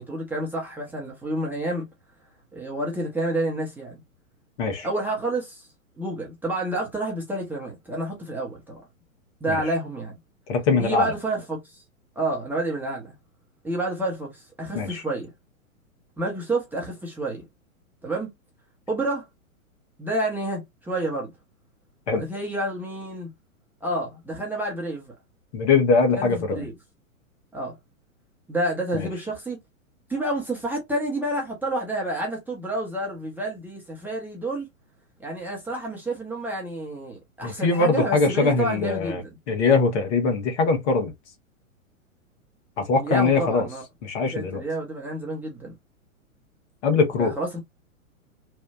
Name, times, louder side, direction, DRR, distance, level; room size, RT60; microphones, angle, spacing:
voice 1, 0.0-1.9 2.5-4.0 4.8-5.7 6.0-8.8 9.4-10.1 10.8-11.8 12.2-13.1 13.6-15.3 16.2-17.4 18.0-18.3 18.9-19.3 20.0-21.3 22.1-23.3 23.8-25.1 26.1-26.7 27.5-27.8 28.5-29.6 30.1-34.7 35.2-39.4 43.0-43.8 44.3-45.7 47.2-47.6, right 1 dB, 5° right, 0.9 m, -29 dB
voice 2, 10.5-11.1 14.7-15.0 22.1-22.3 25.5-26.6 28.9-29.1 37.4-41.1 42.8-43.7 44.0-44.6 46.8-47.3, left 4 dB, 50° left, 1.4 m, -22 dB
3.3 x 2.4 x 2.4 m
hypercardioid pair, 115°, 42 cm